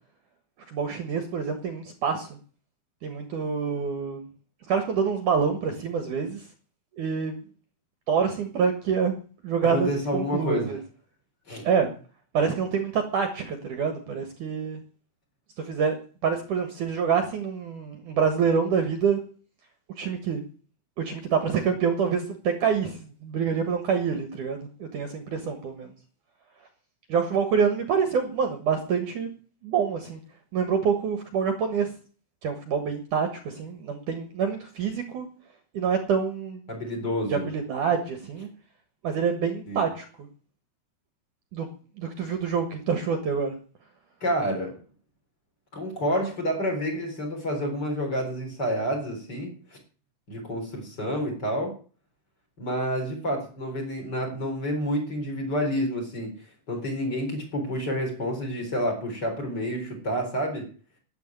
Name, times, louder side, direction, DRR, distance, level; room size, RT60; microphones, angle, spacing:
voice 1, 0.7-2.3 3.0-4.3 4.7-6.5 7.0-7.4 8.1-9.2 9.4-10.8 11.6-11.9 12.3-14.8 15.6-19.2 20.0-20.4 21.0-25.9 27.1-29.3 29.6-30.2 30.5-31.9 32.4-35.3 35.7-36.6 37.3-38.5 39.0-40.3 41.5-41.7 42.0-43.6, right 6 dB, 60° right, 7 dB, 2.6 m, -26 dB
voice 2, 9.6-10.7 11.5-11.7 36.7-37.5 39.7-39.9 44.2-44.7 45.7-49.8 50.3-51.7 52.6-56.3 56.7-60.7, equal, 25° left, 2 dB, 4.7 m, -29 dB
12.5 x 9.6 x 9.1 m, 0.40 s
omnidirectional pair, 4.8 m